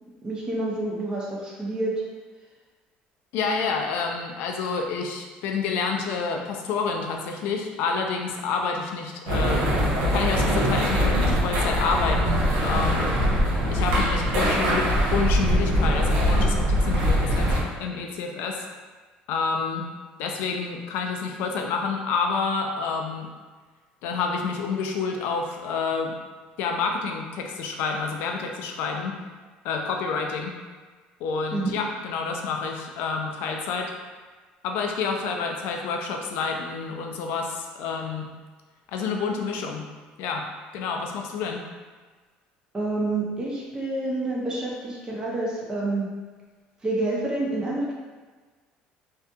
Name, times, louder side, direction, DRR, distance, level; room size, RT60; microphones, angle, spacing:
voice 1, 0.0-2.0 31.5-31.7 42.7-46.1 46.8-47.9, right 2 dB, 25° right, -5 dB, 0.7 m, -28 dB
voice 2, 3.3-9.6 10.1-13.2 13.7-18.6 19.3-19.9 20.2-23.3 24.0-26.1 26.6-29.2 29.6-30.6 31.2-33.9 34.6-38.3 38.9-39.9 40.2-40.5 40.7-41.6, left 5 dB, 75° left, 2 dB, 0.4 m, -28 dB
sound 1, 9.3-17.6, equal, 80° right, 0.6 m, -22 dB
2.6 x 2.5 x 2.2 m, 1.4 s
supercardioid pair, 95°, 3 cm